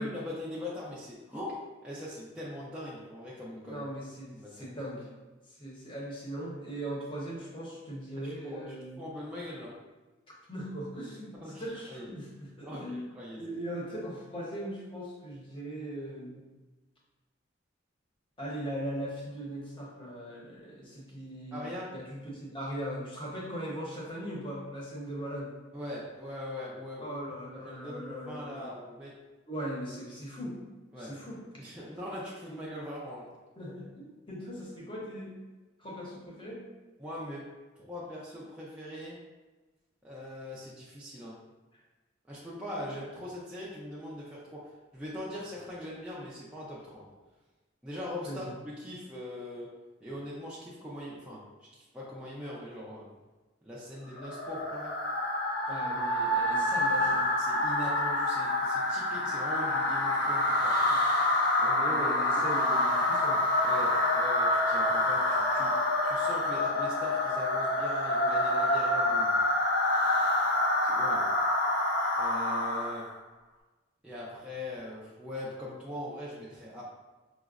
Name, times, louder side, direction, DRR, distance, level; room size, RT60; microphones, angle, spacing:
voice 1, 0.0-1.6 1.8-3.8 4.3-4.7 8.2-9.7 11.3-12.1 12.6-13.4 21.5-21.9 25.7-29.2 30.9-31.1 31.6-33.3 37.0-37.5 37.8-39.2 40.0-41.4 42.3-47.1 47.8-49.7 50.0-53.1 53.6-55.0 57.0-60.9 61.6-62.4 63.6-69.3 70.8-71.3 72.2-73.1 74.0-76.8, left 1 dB, 5° right, -7 dB, 0.4 m, -41 dB
voice 2, 3.6-5.1 5.5-9.0 10.5-12.3 12.6-13.1 13.4-16.4 18.4-25.5 27.0-28.7 29.5-30.6 31.0-31.4 32.5-32.6 33.6-35.3 35.8-36.6 48.2-48.5 55.7-57.3 60.9-61.0 61.8-63.4, equal, 25° left, -4 dB, 0.7 m, -39 dB
sound 1, 54.2-73.1, left 1 dB, 65° left, 0.6 m, -27 dB
4.7 x 2.0 x 2.3 m, 1.2 s
head